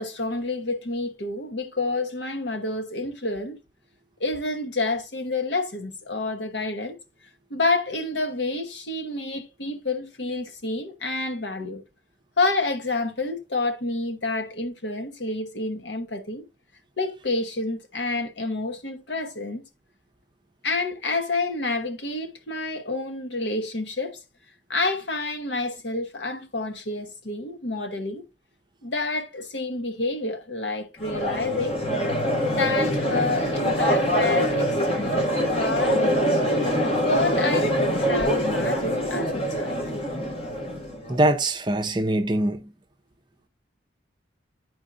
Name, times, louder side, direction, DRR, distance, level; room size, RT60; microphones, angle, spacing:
voice 1, 0.0-3.6 4.2-7.0 7.5-11.8 12.4-16.5 17.0-19.6 20.6-24.2 24.7-28.3 28.8-31.8 32.4-35.3 35.6-36.4 37.0-39.8, left 3 dB, 70° left, 1.1 m, -28 dB
Crowd, 31.0-41.2, equal, 30° left, 1.4 m, -24 dB
voice 2, 41.1-42.7, right 1 dB, 25° right, 0.6 m, -23 dB
10.5 x 4.5 x 2.5 m
head